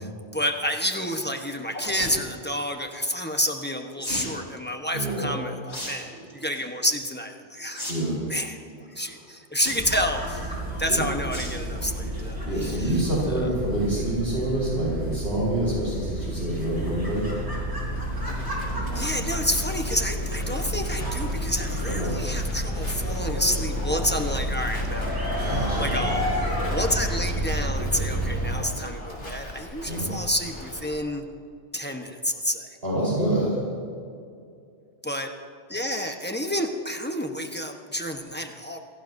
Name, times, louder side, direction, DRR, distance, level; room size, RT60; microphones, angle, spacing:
voice 1, 0.3-7.8 8.3-10.5 10.8-12.8 18.9-25.1 25.4-26.2 26.7-31.2 31.7-32.7 35.0-35.3 35.7-38.8, equal, 10° left, 3 dB, 1.0 m, -29 dB
sound 1, 1.7-2.1 4.0-4.3 5.7-5.9 6.3-6.6 7.7-7.9 8.2-8.3 9.6-10.1 11.3-11.6 12.0-12.2 12.6-12.7 12.9-13.0, left 1 dB, 80° left, 5.2 m, -34 dB
voice 2, 4.9-5.3 6.1-6.3 7.9-8.2 8.9-9.2 10.9-11.1 12.1-17.3 21.9-22.2 25.4-26.2 29.9-30.1 32.8-33.6, right 1 dB, 65° right, -6 dB, 4.6 m, -27 dB
Bob Ulrich Shuttle Launch, 9.8-28.6, equal, 20° right, 4.3 m, -30 dB
Livestock farm animals working animals, 16.5-30.9, left 1 dB, 65° left, 3.3 m, -41 dB
27.5 x 17.5 x 2.7 m, 2.4 s
omnidirectional pair, 1.1 m